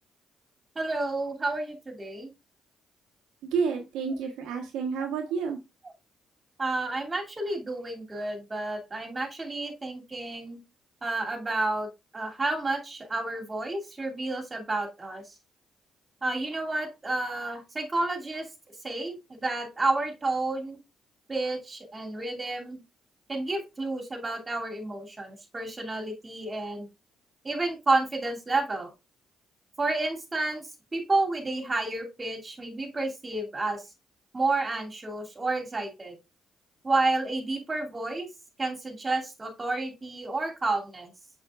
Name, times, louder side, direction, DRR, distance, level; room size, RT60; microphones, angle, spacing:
voice 1, 0.7-2.3 6.6-10.6 11.0-11.9 12.1-15.3 16.2-18.5 18.8-20.8 21.3-22.8 23.3-26.9 27.4-28.9 29.8-33.8 34.3-36.1 36.8-38.3 38.6-41.1, right 2 dB, 30° right, 1 dB, 2.6 m, -30 dB
voice 2, 3.5-5.6, right 5 dB, 75° right, 2 dB, 1.1 m, -29 dB
6.9 x 6.5 x 2.4 m, 0.24 s
hypercardioid pair, 50°, 0 cm